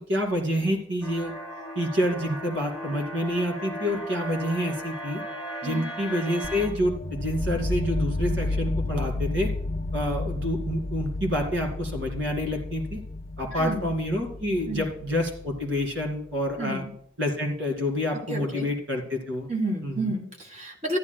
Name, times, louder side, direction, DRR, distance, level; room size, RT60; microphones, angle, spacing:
voice 1, 0.1-1.3 1.7-5.2 5.6-9.5 9.9-13.0 13.4-16.8 17.2-19.5 19.8-20.1, equal, 75° right, 2 dB, 2.6 m, -28 dB
sound 1, 1.0-6.7, equal, 5° right, 1.7 m, -36 dB
sound 2, 6.4-16.2, left 2 dB, 40° left, 0.6 m, -32 dB
voice 2, 13.6-13.9 14.7-14.9 16.6-16.9 18.1-18.7 19.5-21.0, right 2 dB, 40° right, 3 dB, 1.7 m, -31 dB
14.0 x 10.0 x 2.2 m, 0.70 s
head